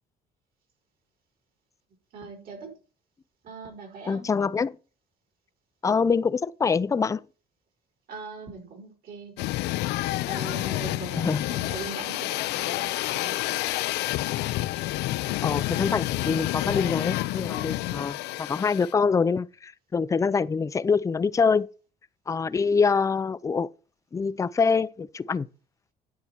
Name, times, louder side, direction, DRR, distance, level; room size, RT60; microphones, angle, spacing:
voice 1, 2.1-2.7 3.4-4.3 8.1-9.5 10.2-13.7, right 4 dB, 60° right, 5.0 m, -41 dB
voice 2, 4.1-4.8 5.8-7.2 11.1-11.5 15.4-21.7 22.3-23.7 24.1-25.5, left 5 dB, 20° left, 0.4 m, -25 dB
sound 1, 9.4-18.9, left 17 dB, 80° left, 0.5 m, -29 dB
9.9 x 8.1 x 4.5 m
cardioid pair, 110°, 17 cm